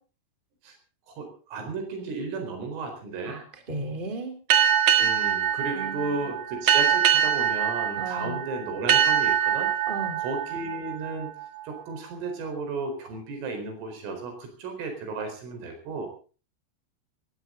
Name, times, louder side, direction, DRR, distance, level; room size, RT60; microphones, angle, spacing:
voice 1, 1.1-3.4 5.0-9.7 10.2-11.3 11.7-16.1, right 3 dB, 85° right, 5 dB, 7.0 m, -34 dB
voice 2, 3.7-4.3 5.7-6.2 8.0-8.4 9.9-10.2, right 2 dB, 10° right, 6 dB, 2.8 m, -34 dB
sound 1, 4.5-11.8, right 9 dB, 55° right, 1.8 m, -24 dB
19.5 x 17.5 x 3.9 m, 0.38 s
omnidirectional pair, 5.6 m